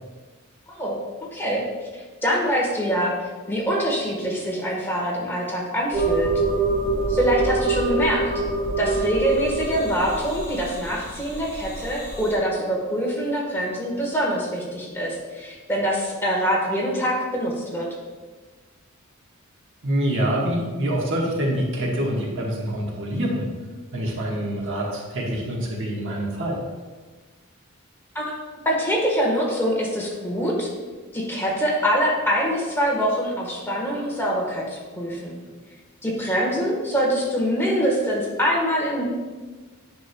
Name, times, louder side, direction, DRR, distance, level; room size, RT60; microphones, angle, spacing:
voice 1, 0.7-1.0 1.3-1.6 2.2-3.1 3.5-6.3 7.1-8.2 8.8-17.9 28.1-30.7 31.1-35.4 36.0-39.0, equal, 10° left, -3 dB, 1.4 m, -24 dB
sound 1, 5.9-12.3, right 3 dB, 20° right, 1.8 m, -26 dB
voice 2, 19.8-23.5 23.9-26.6, right 1 dB, 60° right, -2 dB, 1.3 m, -25 dB
9.5 x 6.0 x 2.3 m, 1.3 s
head